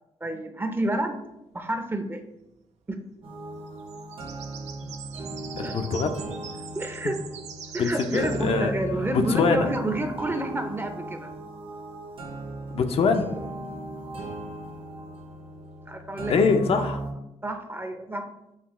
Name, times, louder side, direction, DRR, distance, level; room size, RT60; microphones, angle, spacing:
voice 1, 0.2-1.2 1.5-2.2 2.9-3.0 5.6-5.8 6.8-7.2 7.7-11.3 15.9-16.5 17.4-18.3, right 1 dB, 20° right, 6 dB, 0.5 m, -29 dB
sound 1, 3.2-17.1, right 2 dB, 50° right, 0.8 m, -37 dB
sound 2, 3.7-9.6 14.8-15.7, right 8 dB, 85° right, 0.4 m, -44 dB
voice 2, 5.6-6.2 7.8-8.7 9.3-9.7 12.7-13.3 16.3-17.0, left 5 dB, 60° left, 6 dB, 0.5 m, -23 dB
5.7 x 2.3 x 3.0 m, 0.87 s
cardioid pair, 75°, 11 cm